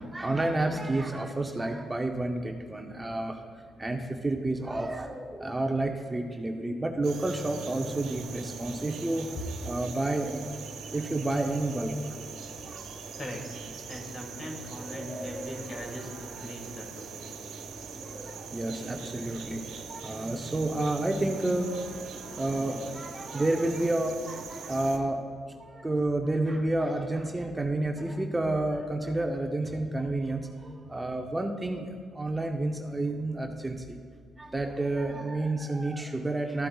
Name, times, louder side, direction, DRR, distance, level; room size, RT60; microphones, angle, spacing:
voice 1, 0.0-3.4 3.8-9.3 9.6-10.5 10.9-12.2 12.6-13.0 14.8-15.6 18.0-21.7 22.4-25.2 25.6-34.0 34.4-36.7, right 2 dB, 15° right, 3 dB, 0.7 m, -30 dB
sound 1, 7.0-25.0, right 5 dB, 85° right, 1.2 m, -42 dB
voice 2, 13.2-17.2, left 1 dB, 40° left, 0 dB, 2.3 m, -41 dB
14.0 x 7.5 x 2.3 m, 2.1 s
cardioid pair, 90°, 0 cm